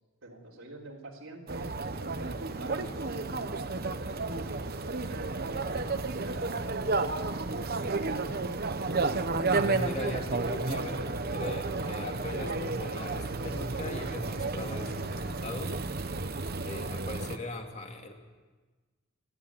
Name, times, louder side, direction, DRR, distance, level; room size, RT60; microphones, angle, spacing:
voice 1, 0.2-1.7 2.1-3.6 3.8-6.9 7.6-8.4 10.8-11.1, right 2 dB, 80° right, -5 dB, 3.5 m, -45 dB
sound 1, 1.5-17.4, right 3 dB, 45° right, 1.0 m, -32 dB
voice 2, 9.5-15.8 16.3-18.1, left 1 dB, 35° left, 2 dB, 2.7 m, -39 dB
29.5 x 11.5 x 9.6 m, 1.3 s
head